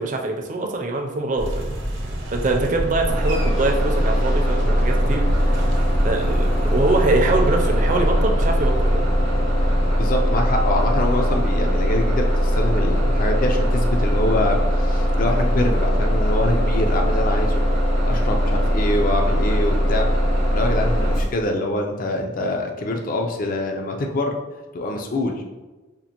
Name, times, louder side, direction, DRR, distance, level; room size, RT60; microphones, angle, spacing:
voice 1, 0.0-1.7 2.3-5.3 6.0-9.1, right 2 dB, 40° right, 2 dB, 0.5 m, -23 dB
sound 1, 1.4-9.9, equal, 80° right, 0.8 m, -29 dB
Bus, 3.1-21.2, equal, 75° left, 1.1 m, -20 dB
voice 2, 10.0-17.6 18.0-20.1 20.5-24.4 24.7-25.4, left 1 dB, 45° left, 3 dB, 0.4 m, -25 dB
5.1 x 2.5 x 2.9 m, 1.2 s
head